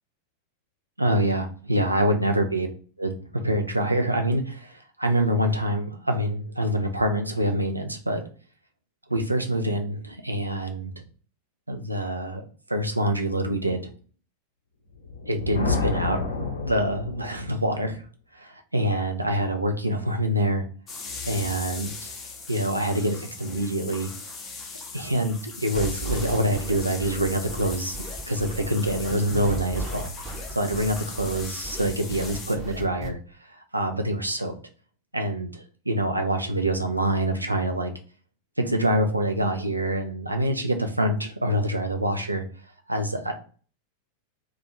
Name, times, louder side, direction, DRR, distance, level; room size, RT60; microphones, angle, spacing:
voice 1, 1.0-2.7 3.0-8.2 9.1-11.0 11.7-12.4 12.7-13.9 15.3-18.0 18.3-20.7 21.3-22.1 22.5-24.1 24.9-28.0 28.3-30.3 30.5-34.6 35.1-37.9 38.6-42.5 42.9-43.3, right 1 dB, 85° right, 5 dB, 0.4 m, -26 dB
Thunder, 14.9-17.6, left 4 dB, 70° left, 0.5 m, -29 dB
sound 1, 20.9-32.6, left 4 dB, 25° left, 0.6 m, -39 dB
sound 2, 25.7-33.1, right 1 dB, 25° right, 0.7 m, -35 dB
2.4 x 2.4 x 3.0 m, 0.40 s
figure-of-eight pair, 90°, 0 cm